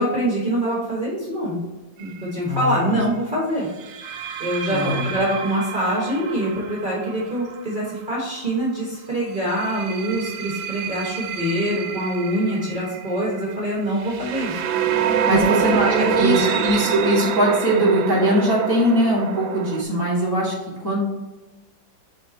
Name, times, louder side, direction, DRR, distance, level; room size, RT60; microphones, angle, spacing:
voice 1, 0.0-1.6 2.0-3.7 4.4-14.6 15.3-15.6 15.8-16.4, right 1 dB, 30° right, -5 dB, 1.4 m, -24 dB
sound 1, 2.0-2.3 3.8-8.5 9.3-19.8, right 8 dB, 80° right, 1.3 m, -27 dB
voice 2, 2.4-3.0 4.7-5.1 15.3-20.5 20.8-21.0, right 1 dB, 15° left, -6 dB, 1.4 m, -21 dB
5.0 x 4.6 x 4.2 m, 1.1 s
omnidirectional pair, 2.1 m